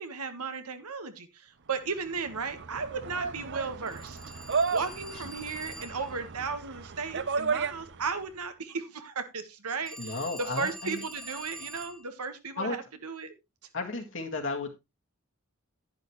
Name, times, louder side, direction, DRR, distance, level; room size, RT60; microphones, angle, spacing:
voice 1, 0.0-4.2 4.7-13.3, right 4 dB, 85° right, 1.5 m, -35 dB
sound 1, 1.9-8.2, right 5 dB, 55° right, 0.7 m, -34 dB
Telephone, 3.9-6.2 9.9-12.1, equal, ahead, 1.0 m, -45 dB
voice 2, 10.0-11.0 12.6-12.8 13.7-14.7, left 3 dB, 60° left, 1.9 m, -33 dB
10.5 x 10.5 x 3.1 m
head